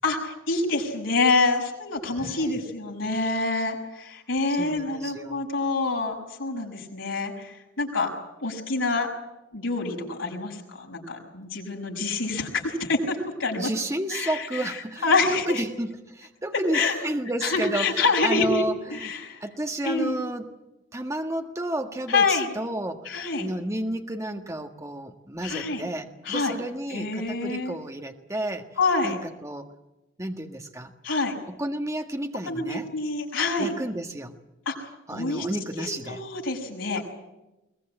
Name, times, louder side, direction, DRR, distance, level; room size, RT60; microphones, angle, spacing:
voice 1, 0.0-8.1 8.4-9.1 9.5-13.7 14.1-14.7 15.0-15.6 16.7-17.0 17.4-18.6 18.9-19.4 19.8-20.1 22.1-22.5 23.0-23.5 25.4-25.8 26.2-26.5 26.9-27.7 28.8-29.2 31.0-31.3 32.5-33.7 34.7-35.5 35.8-37.0, left 3 dB, 85° left, 0 dB, 6.2 m, -26 dB
voice 2, 2.2-2.6 4.5-5.4 13.6-19.1 19.4-20.5 20.9-23.1 23.4-28.7 29.0-29.7 30.2-30.9 31.5-32.9 33.6-34.4 35.1-36.2, right 1 dB, 15° right, 5 dB, 1.6 m, -31 dB
22.5 x 20.0 x 8.9 m, 0.97 s
head